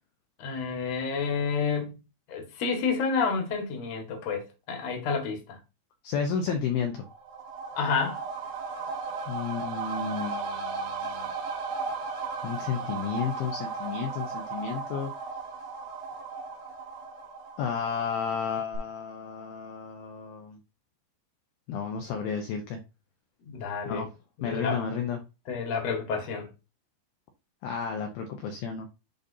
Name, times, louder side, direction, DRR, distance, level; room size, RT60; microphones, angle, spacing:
voice 1, 0.4-2.0 2.3-5.6 7.7-8.2 23.5-24.1 24.4-24.8 25.5-26.5, left 5 dB, 50° left, 2.1 m, -29 dB
voice 2, 6.0-7.0 9.3-11.3 12.4-15.1 17.6-20.6 21.7-22.8 23.9-24.1 24.4-25.2 27.6-28.9, left 6 dB, 75° left, 2.2 m, -32 dB
sound 1, 7.0-18.4 18.7-18.8, right 4 dB, 70° right, 3.5 m, -36 dB
10.5 x 4.0 x 2.7 m
omnidirectional pair, 5.3 m